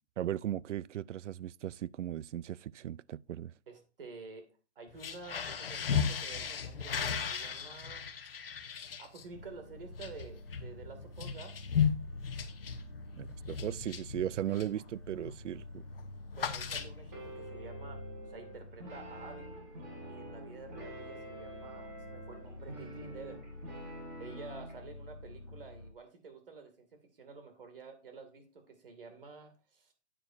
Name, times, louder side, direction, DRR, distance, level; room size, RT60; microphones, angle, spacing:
voice 1, 0.2-3.5 13.1-15.8, right 11 dB, 85° right, 0.5 m, -37 dB
voice 2, 3.7-4.5 4.8-8.1 9.0-11.6 16.4-19.5 20.1-23.4 24.2-26.9 27.1-29.9, right 4 dB, 50° right, 2.4 m, -50 dB
sound 1, 4.9-14.8 15.2-15.5 15.7-17.3, left 7 dB, 55° left, 1.0 m, -36 dB
sound 2, 9.3-25.9, left 1 dB, 30° left, 0.4 m, -49 dB
sound 3, 17.1-24.8, right 1 dB, 15° right, 1.4 m, -47 dB
9.3 x 8.9 x 2.7 m
hypercardioid pair, 175°, 35 cm